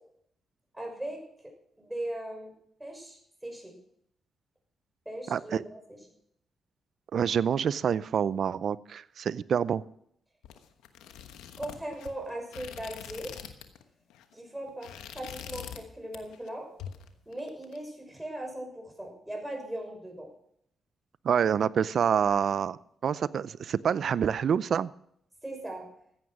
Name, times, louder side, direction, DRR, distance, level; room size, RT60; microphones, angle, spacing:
voice 1, 0.7-1.2 1.8-2.5 2.8-3.2 3.4-3.7 5.0-6.0 11.6-13.3 14.3-16.7 17.3-20.3 25.4-25.9, right 1 dB, 10° right, 2 dB, 6.1 m, -38 dB
voice 2, 5.3-5.6 7.1-9.8 21.2-22.8 23.0-24.9, right 8 dB, 65° right, 19 dB, 0.5 m, -27 dB
sound 1, 10.4-13.8 14.1-14.3 14.7-15.9 16.1-16.5 16.8-17.8, left 9 dB, 90° left, 1.2 m, -44 dB
15.0 x 9.6 x 6.2 m, 0.71 s
supercardioid pair, 55°, 0 cm